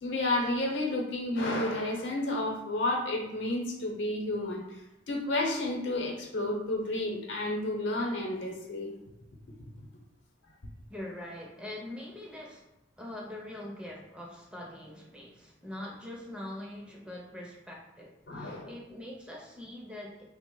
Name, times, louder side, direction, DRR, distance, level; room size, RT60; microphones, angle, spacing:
voice 1, 0.0-4.6 5.1-8.9 18.3-18.7, left 1 dB, 70° left, 0 dB, 0.8 m, -31 dB
voice 2, 10.9-12.7 13.0-20.2, left 1 dB, 5° right, -2 dB, 0.5 m, -43 dB
3.4 x 2.0 x 3.7 m, 0.93 s
head